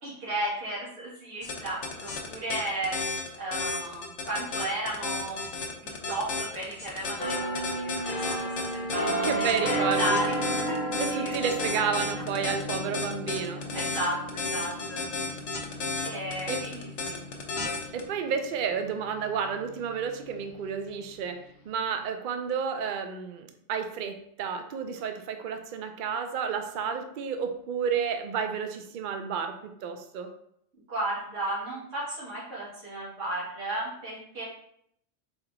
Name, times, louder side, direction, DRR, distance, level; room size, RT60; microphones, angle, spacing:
voice 1, 0.0-3.0 3.4-5.4 5.8-11.4 13.7-15.0 16.0-17.2 30.9-34.4, right 1 dB, 80° right, -7 dB, 2.3 m, -34 dB
sound 1, 1.4-18.0, left 4 dB, 70° left, 1.1 m, -33 dB
sound 2, 7.2-18.7 19.2-19.4, right 1 dB, 50° left, 0.8 m, -33 dB
voice 2, 9.2-10.2 11.0-13.6 16.5-16.7 17.9-30.3, right 6 dB, 60° right, 6 dB, 0.5 m, -31 dB
4.2 x 4.2 x 2.6 m, 0.72 s
omnidirectional pair, 1.3 m